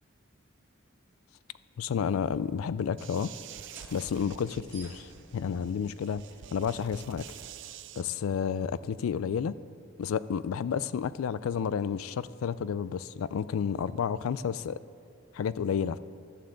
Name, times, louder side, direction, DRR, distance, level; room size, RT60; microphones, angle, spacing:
voice 1, 1.8-3.3 3.9-6.2 6.5-7.3 8.0-9.6 10.0-14.8 15.3-16.0, left 7 dB, 85° left, 17 dB, 0.3 m, -31 dB
sound 1, 3.0-8.0, right 9 dB, 60° right, 0.4 m, -48 dB
sound 2, 3.4-10.7, right 2 dB, 10° right, 1.8 m, -57 dB
15.0 x 11.0 x 3.8 m, 2.5 s
head